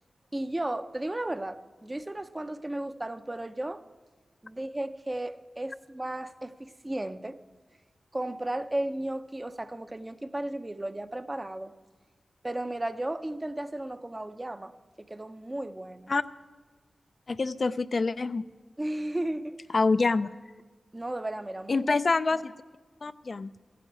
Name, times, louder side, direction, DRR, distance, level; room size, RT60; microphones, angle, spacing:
voice 1, 0.3-3.8 4.4-7.4 8.1-11.7 12.4-14.7 15.0-16.1 18.8-19.6 20.9-21.9, right 1 dB, 25° right, 10 dB, 0.6 m, -34 dB
voice 2, 17.3-18.5 19.7-20.3 21.7-22.5 23.0-23.5, left 3 dB, 55° left, 12 dB, 0.4 m, -26 dB
15.0 x 7.8 x 8.6 m, 1.4 s
cardioid pair, 60°, 0 cm